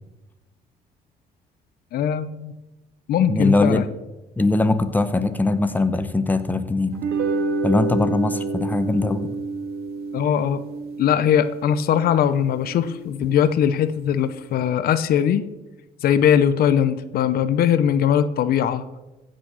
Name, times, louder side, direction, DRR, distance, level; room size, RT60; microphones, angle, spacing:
voice 1, 1.9-2.5 3.1-3.8 10.1-10.6 11.0-15.5 16.0-18.8, left 9 dB, 65° left, 13 dB, 0.7 m, -20 dB
voice 2, 3.3-3.8 4.4-7.0 7.6-9.3, left 2 dB, 10° left, 10 dB, 0.9 m, -21 dB
sound 1, 6.9-13.4, right 3 dB, 70° right, 2.0 m, -29 dB
15.0 x 6.4 x 6.2 m, 1.1 s
cardioid pair, 110°, 17 cm